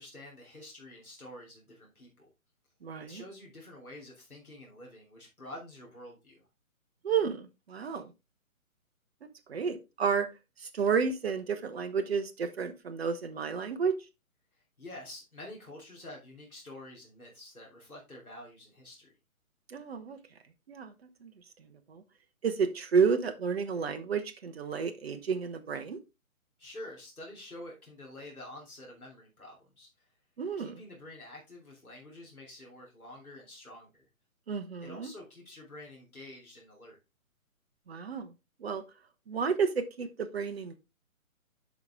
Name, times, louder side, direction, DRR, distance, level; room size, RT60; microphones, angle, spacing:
voice 1, 0.0-2.3 3.0-6.4 14.8-19.1 26.6-29.9 30.6-34.1 34.8-37.0, left 1 dB, 85° left, -2 dB, 3.1 m, -48 dB
voice 2, 2.8-3.2 7.0-8.1 9.5-10.3 10.6-13.9 19.7-20.2 20.7-20.9 21.2-21.3 21.9-22.0 22.4-26.0 30.4-30.8 34.5-35.1 37.9-38.3 38.6-38.8 39.3-40.8, right 6 dB, 45° right, 8 dB, 1.1 m, -31 dB
7.9 x 5.2 x 3.5 m, 0.26 s
figure-of-eight pair, 135°, 42 cm